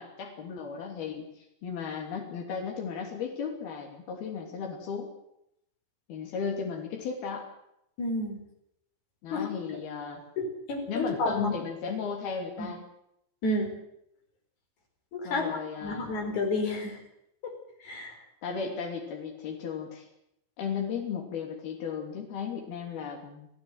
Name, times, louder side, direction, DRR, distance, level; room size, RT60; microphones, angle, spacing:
voice 1, 0.0-5.1 6.1-7.4 9.2-10.2 10.9-12.8 15.2-16.1 18.4-20.1 20.6-23.5, left 6 dB, 85° left, 1 dB, 4.9 m, -35 dB
voice 2, 8.0-8.4 9.3-9.5 10.4-11.5 12.6-12.7 13.4-13.8 15.1-15.5 15.8-17.0 17.4-17.5 17.8-18.2, left 2 dB, 50° left, 3 dB, 6.2 m, -30 dB
28.5 x 15.5 x 8.0 m, 0.78 s
omnidirectional pair, 4.3 m